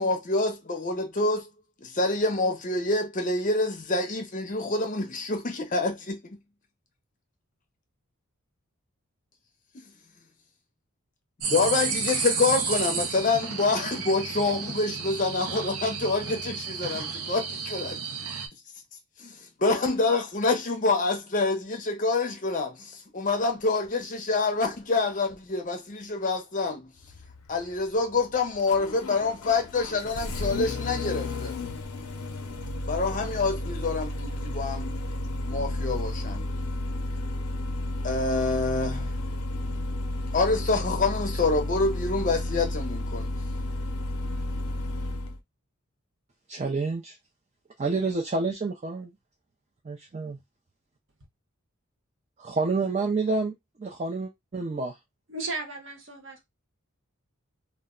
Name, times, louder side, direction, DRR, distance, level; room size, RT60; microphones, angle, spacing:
voice 1, 0.0-1.5 1.8-6.4 11.5-18.0 19.2-26.9 27.5-31.5 32.8-35.0 35.5-36.5 38.0-39.1 40.3-43.3, left 3 dB, 35° left, 0.5 m, -27 dB
sound 1, 11.4-18.5, right 5 dB, 90° right, 0.7 m, -32 dB
Engine starting, 27.0-45.4, left 1 dB, 85° left, 0.5 m, -32 dB
voice 2, 46.5-47.1 47.8-49.1 49.9-50.4 52.4-53.5 53.8-54.9, right 3 dB, 30° right, 0.3 m, -28 dB
voice 3, 55.3-56.4, right 3 dB, 55° right, 0.8 m, -35 dB
2.2 x 2.1 x 3.6 m
head